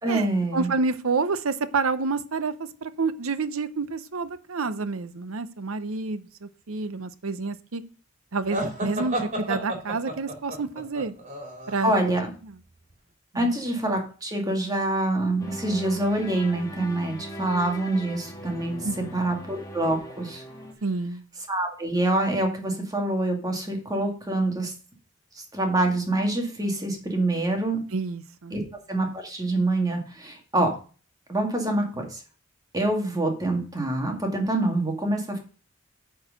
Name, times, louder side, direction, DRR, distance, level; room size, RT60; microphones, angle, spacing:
voice 1, 0.0-0.7 11.8-12.3 13.3-18.9 19.1-20.4 21.5-24.7 25.3-27.8 28.5-28.6 28.9-30.7 31.3-32.2 32.7-35.4, right 2 dB, 20° right, 2 dB, 2.2 m, -26 dB
voice 2, 0.5-7.8 8.3-11.1 11.7-12.1 12.4-12.6 13.3-13.5 18.8-19.1 20.8-21.2 27.9-28.6, right 4 dB, 80° right, 13 dB, 0.8 m, -29 dB
sound 1, 8.5-12.2, right 1 dB, 35° right, 2.8 m, -32 dB
sound 2, 15.4-20.7, equal, 15° left, 1.7 m, -40 dB
9.0 x 4.8 x 6.4 m, 0.38 s
head